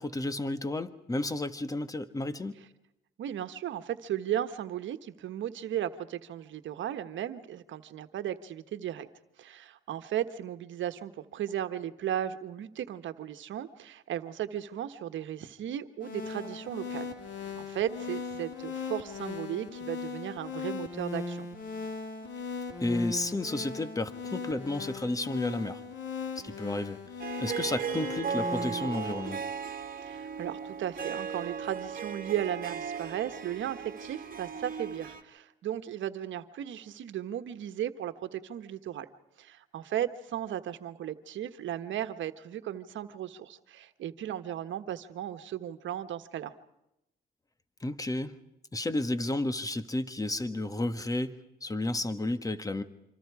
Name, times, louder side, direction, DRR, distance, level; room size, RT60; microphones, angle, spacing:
voice 1, 0.0-2.6 22.8-25.8 26.4-29.4 47.8-48.3 48.7-52.8, left 2 dB, 15° left, 12 dB, 1.5 m, -32 dB
voice 2, 3.2-9.1 9.4-17.0 17.5-21.5 30.0-39.1 39.4-46.5, right 11 dB, 70° right, 10 dB, 1.4 m, -36 dB
sound 1, 16.0-29.1, left 4 dB, 70° left, 4.0 m, -38 dB
Harp, 27.2-35.2, right 6 dB, 45° right, 2.0 m, -37 dB
26.5 x 26.0 x 4.9 m, 0.87 s
cardioid pair, 90°, 20 cm